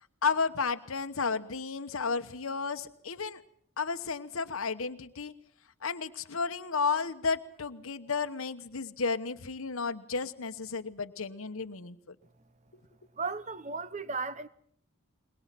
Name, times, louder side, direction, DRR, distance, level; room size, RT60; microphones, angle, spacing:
voice 1, 0.2-3.4 3.8-5.3 5.8-12.1, left 5 dB, 75° left, 1.0 m, -32 dB
voice 2, 13.2-14.5, right 4 dB, 30° right, 0.9 m, -35 dB
22.5 x 21.5 x 7.6 m
head